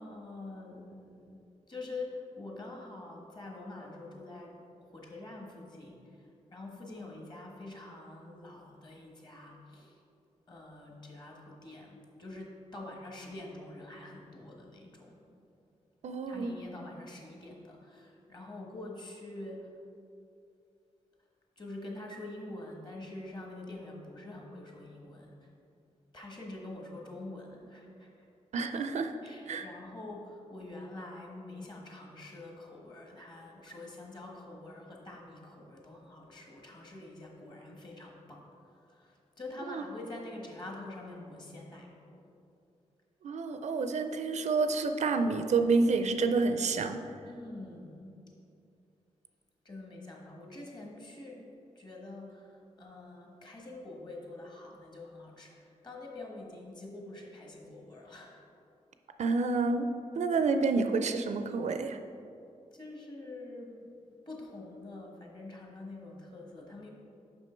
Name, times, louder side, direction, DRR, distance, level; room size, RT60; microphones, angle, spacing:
voice 1, 0.0-1.4 1.7-10.0 10.5-15.2 16.3-19.7 21.6-25.5 26.1-28.3 29.2-42.3 47.2-48.2 49.6-51.4 51.7-58.5 62.7-63.9 64.3-66.9, left 2 dB, 35° left, -1 dB, 1.3 m, -46 dB
voice 2, 16.0-16.6 28.5-29.1 29.5-29.6 39.7-39.8 43.2-47.0 59.2-59.9 60.1-62.0, right 4 dB, 65° right, 7 dB, 0.4 m, -28 dB
6.0 x 5.6 x 4.4 m, 2.6 s
wide cardioid pair, 95°, 13 cm